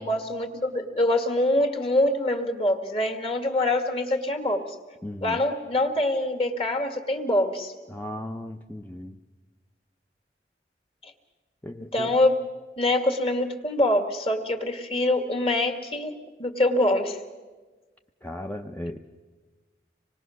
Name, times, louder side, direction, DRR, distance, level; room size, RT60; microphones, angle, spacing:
voice 1, 0.0-4.7 5.2-7.7 11.0-11.1 11.9-12.4 12.8-17.2, left 1 dB, 35° left, 5 dB, 1.8 m, -24 dB
voice 2, 5.0-5.4 7.9-9.2 11.6-12.1 18.2-19.0, left 1 dB, 10° left, 4 dB, 0.6 m, -36 dB
25.5 x 20.0 x 6.3 m, 1.3 s
head